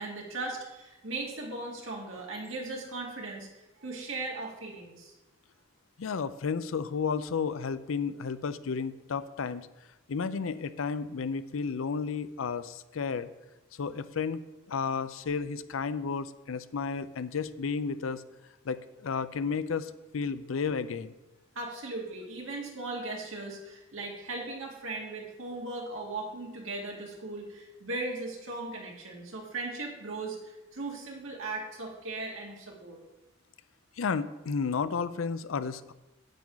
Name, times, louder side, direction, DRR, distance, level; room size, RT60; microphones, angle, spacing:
voice 1, 0.0-3.5 3.8-5.1 21.6-33.0, right 2 dB, 85° right, -1 dB, 2.2 m, -38 dB
voice 2, 6.0-9.7 10.1-13.3 13.8-18.2 18.6-21.1 34.0-35.9, left 5 dB, 85° left, 13 dB, 0.5 m, -32 dB
9.1 x 8.5 x 4.0 m, 1.0 s
head